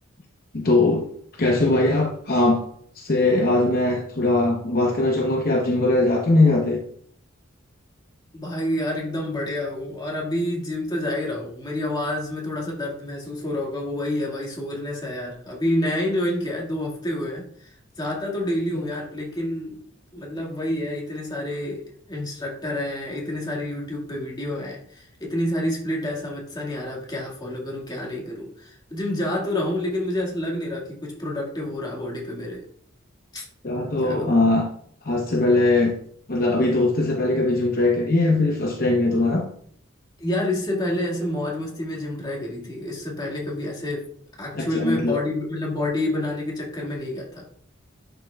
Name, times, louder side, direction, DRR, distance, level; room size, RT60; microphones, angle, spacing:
voice 1, 0.5-1.0 1.4-2.6 2.9-6.8 18.7-18.8 33.6-34.6 35.0-35.9 36.3-39.4 44.5-45.2, left 2 dB, 50° left, 0 dB, 0.8 m, -20 dB
voice 2, 8.3-19.8 20.1-21.8 22.1-32.6 33.3-33.5 34.0-34.3 40.2-44.0 44.4-47.5, left 1 dB, 20° left, -3 dB, 1.9 m, -28 dB
11.0 x 5.7 x 2.3 m, 0.63 s
head